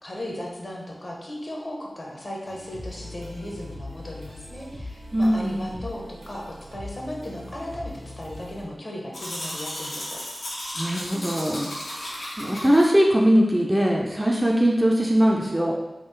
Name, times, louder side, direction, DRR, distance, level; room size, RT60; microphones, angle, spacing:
voice 1, 0.0-6.4 6.7-10.2, left 1 dB, 40° left, -2 dB, 0.7 m, -36 dB
sound 1, 2.5-8.6, left 1 dB, 85° right, 0.8 m, -40 dB
voice 2, 5.1-5.8 10.8-11.7 12.4-15.7, equal, 10° right, -2 dB, 0.3 m, -21 dB
Domestic sounds home sounds, 9.1-12.9, left 1 dB, 85° left, 0.8 m, -34 dB
3.6 x 2.3 x 3.2 m, 1.0 s
wide cardioid pair, 100°, 0 cm